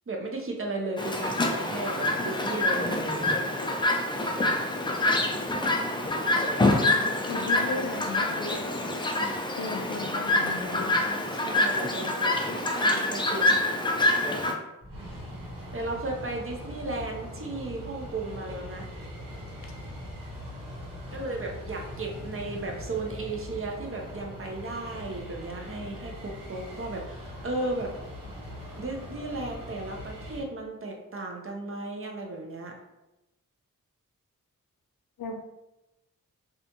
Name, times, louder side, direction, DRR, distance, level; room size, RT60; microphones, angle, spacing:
voice 1, 0.1-3.0 11.3-13.9 15.7-18.9 21.1-27.9 28.8-32.8, right 2 dB, 40° right, 1 dB, 0.6 m, -35 dB
Chirp tweet, 1.0-14.5, left 2 dB, 15° left, 0.3 m, -26 dB
voice 2, 6.7-7.0 7.3-8.7 9.6-11.0 35.2-35.3, left 4 dB, 85° left, 3 dB, 0.5 m, -36 dB
sound 1, 14.8-30.4, equal, 80° right, 1.0 m, -41 dB
2.4 x 2.2 x 2.8 m, 0.96 s
cardioid pair, 55°, 33 cm